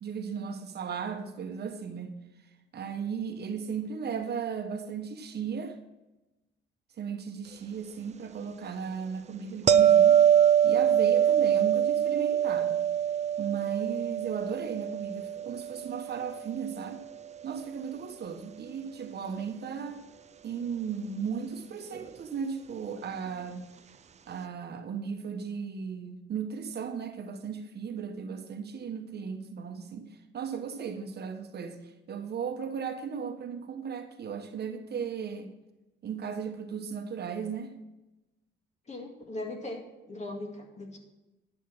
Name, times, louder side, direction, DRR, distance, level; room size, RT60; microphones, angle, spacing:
voice 1, 0.0-2.1 2.7-5.8 7.0-10.2 10.6-12.8 13.4-17.0 17.4-20.0 20.4-23.6 24.3-35.5 36.0-37.7, right 6 dB, 55° right, 5 dB, 1.2 m, -36 dB
sound 1, 9.7-16.7 21.9-22.1, right 9 dB, 35° right, 0.5 m, -24 dB
voice 2, 38.9-41.0, left 2 dB, 35° left, 2 dB, 2.1 m, -39 dB
10.5 x 6.4 x 6.1 m, 1.0 s
cardioid pair, 90°, 20 cm